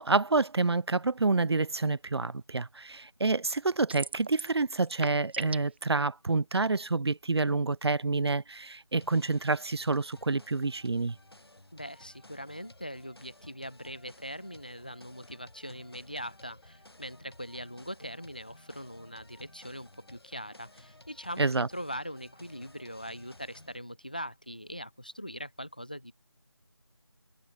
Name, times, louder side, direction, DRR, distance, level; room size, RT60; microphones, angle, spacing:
voice 1, 0.0-11.2 21.4-21.7, right 3 dB, 65° right, 0.4 m, -28 dB
sound 1, 3.9-4.6 4.8-5.8, right 4 dB, 25° right, 2.1 m, -37 dB
sound 2, 9.0-23.8, left 1 dB, 60° left, 6.8 m, -56 dB
voice 2, 11.7-26.1, equal, 20° left, 0.5 m, -41 dB
figure-of-eight pair, 165°, 15 cm